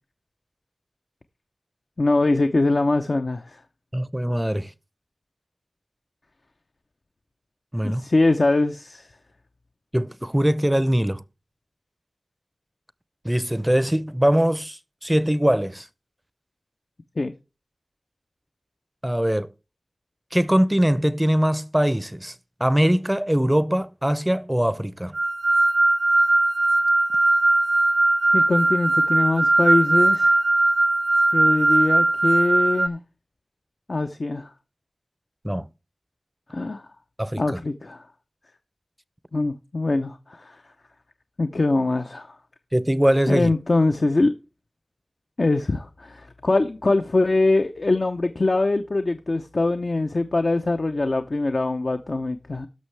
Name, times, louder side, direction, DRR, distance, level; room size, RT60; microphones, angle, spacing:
voice 1, 2.0-3.6 7.8-9.0 17.2-17.3 28.3-30.4 31.3-33.0 33.9-34.5 36.5-36.8 37.4-38.0 39.3-40.6 41.4-42.4 43.3-44.3 45.4-52.7, left 2 dB, 65° left, 0.7 m, -23 dB
voice 2, 3.9-4.7 7.7-8.1 9.9-11.2 13.2-15.9 19.0-19.5 20.3-22.3 22.6-25.1 35.4-35.7 37.2-37.6 42.7-43.5, equal, 15° right, 0.6 m, -22 dB
sound 1, 25.1-32.9, right 2 dB, 75° right, 0.5 m, -19 dB
17.0 x 6.3 x 3.3 m
wide cardioid pair, 40°, 0 cm